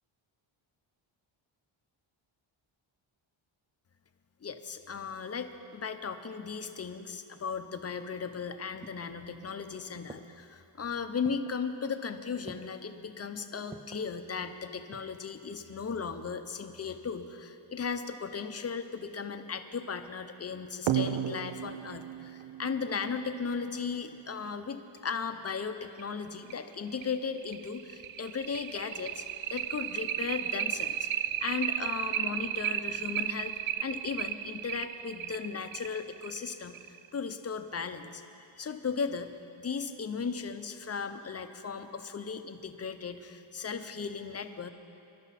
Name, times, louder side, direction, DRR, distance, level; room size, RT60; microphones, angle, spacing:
voice 1, 4.4-29.2 29.5-31.1 31.4-33.5 33.8-38.2 38.5-44.7, left 5 dB, 30° left, 8 dB, 0.8 m, -36 dB
sound 1, 8.3-9.6 10.1-10.6 11.2-11.7 12.5-12.9 13.7-14.1 14.7-15.3 15.5-15.6, right 2 dB, 10° right, 0.4 m, -50 dB
sound 2, 20.9-24.0 25.5-25.6 26.0-26.1 26.5-26.6 27.0-37.1, right 11 dB, 70° right, 0.6 m, -34 dB
24.0 x 12.0 x 4.2 m, 2.7 s
wide cardioid pair, 130°, 49 cm